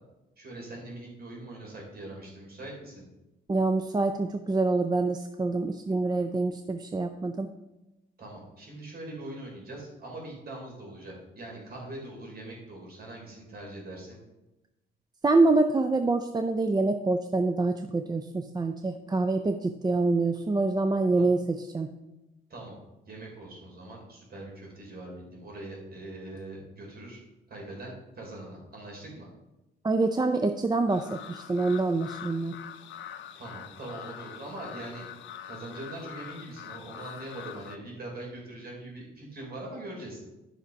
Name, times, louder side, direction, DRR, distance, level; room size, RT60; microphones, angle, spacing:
voice 1, 0.4-3.1 8.2-14.2 21.2-21.3 22.5-22.8 23.1-27.2 27.5-29.3 33.4-35.0 35.4-40.2, right 1 dB, 50° right, -1 dB, 4.1 m, -42 dB
voice 2, 3.5-7.5 15.2-21.9 29.8-32.6, right 3 dB, 20° right, 7 dB, 0.6 m, -26 dB
sound 1, 30.9-37.8, left 10 dB, 70° left, 0.7 m, -44 dB
11.0 x 5.9 x 5.2 m, 0.99 s
cardioid pair, 90°, 20 cm